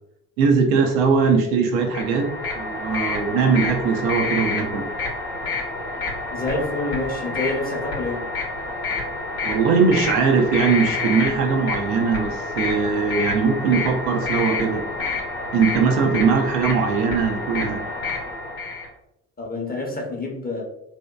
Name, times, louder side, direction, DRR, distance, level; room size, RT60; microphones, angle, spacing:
voice 1, 0.4-2.3 2.6-4.9 9.4-14.9 15.5-17.8, right 5 dB, 80° right, 4 dB, 0.5 m, -20 dB
sound 1, 1.8-18.9, left 3 dB, 75° left, 0.7 m, -28 dB
voice 2, 6.3-8.2 19.4-20.6, left 2 dB, 20° left, 0 dB, 0.7 m, -27 dB
2.8 x 2.1 x 2.2 m, 0.85 s
hypercardioid pair, 50°, 42 cm